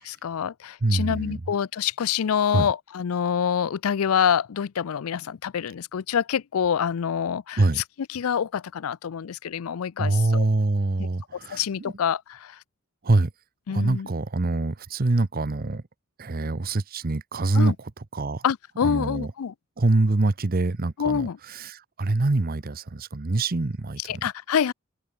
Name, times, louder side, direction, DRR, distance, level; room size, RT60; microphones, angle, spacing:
voice 1, 0.0-10.5 11.0-11.1 11.5-12.6 13.7-14.1 17.5-17.8 18.4-19.5 21.0-21.4 24.0-24.7, left 8 dB, 90° left, 0.4 m, -26 dB
voice 2, 0.8-1.4 2.5-2.7 7.6-7.8 10.0-11.9 13.0-13.3 13.7-15.8 16.2-17.7 18.1-18.4 18.8-19.3 19.8-24.0, right 2 dB, 45° right, 0.8 m, -24 dB
head